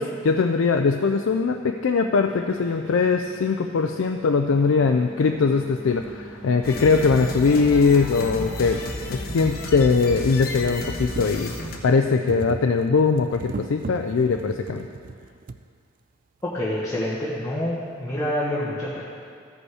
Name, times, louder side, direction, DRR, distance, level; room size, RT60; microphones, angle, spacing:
voice 1, 0.0-8.8 9.1-11.5 11.8-14.9, left 4 dB, 70° left, 5 dB, 0.4 m, -21 dB
sound 1, 1.3-8.6, right 1 dB, 75° right, 2.6 m, -44 dB
sound 2, 6.0-6.1 7.1-7.2 7.7-7.8 8.0-15.6 16.5-16.6 16.9-17.0, right 4 dB, 40° right, 0.3 m, -39 dB
sound 3, 6.6-11.8, left 1 dB, 45° left, 0.9 m, -32 dB
voice 2, 16.4-19.0, left 1 dB, 15° left, -8 dB, 1.3 m, -27 dB
14.5 x 5.3 x 4.8 m, 2.2 s
head